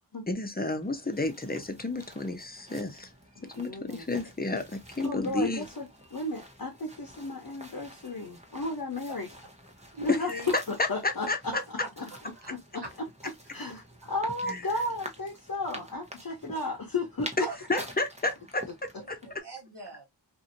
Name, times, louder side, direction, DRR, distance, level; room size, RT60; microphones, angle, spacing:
voice 1, 0.3-3.1 3.6-5.6 10.1-11.6 14.5-14.7 17.4-19.2, left 2 dB, 20° left, 0.7 m, -31 dB
sound 1, 0.8-19.4, equal, 15° right, 0.8 m, -48 dB
voice 2, 3.4-4.0 5.0-5.9 6.1-9.3 10.0-11.3 12.0-12.1 12.5-13.1 13.5-13.8 14.1-17.5, left 2 dB, 55° left, 0.8 m, -33 dB
voice 3, 9.9-10.5 11.8-12.5 12.8-12.9 16.5-16.6 17.4-17.9 19.0-20.0, right 2 dB, 70° right, 1.2 m, -42 dB
2.7 x 2.6 x 2.6 m
wide cardioid pair, 55°, 42 cm